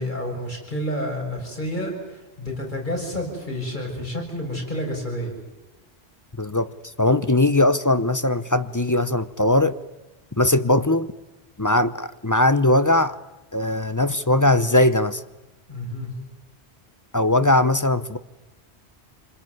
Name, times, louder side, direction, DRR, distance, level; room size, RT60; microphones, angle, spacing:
voice 1, 0.0-5.3 15.7-16.1, equal, 45° left, 7.0 m, -29 dB
voice 2, 6.4-6.7 7.0-9.8 10.4-11.1 11.6-13.2 13.5-15.2 17.1-18.2, left 1 dB, 20° left, 0.8 m, -20 dB
27.5 x 21.5 x 9.6 m
omnidirectional pair, 1.1 m